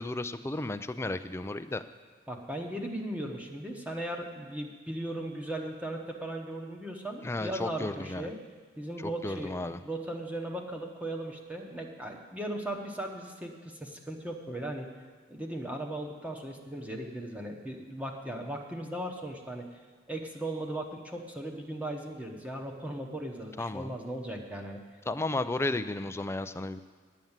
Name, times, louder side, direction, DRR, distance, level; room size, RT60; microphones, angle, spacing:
voice 1, 0.0-1.8 7.2-8.3 9.0-9.8 23.6-23.9 25.1-26.8, left 2 dB, 15° left, 11 dB, 0.4 m, -33 dB
voice 2, 2.3-8.4 8.8-14.9 15.3-19.7 20.1-24.8, right 1 dB, 5° right, 1 dB, 1.0 m, -37 dB
9.4 x 9.2 x 7.3 m, 1.5 s
head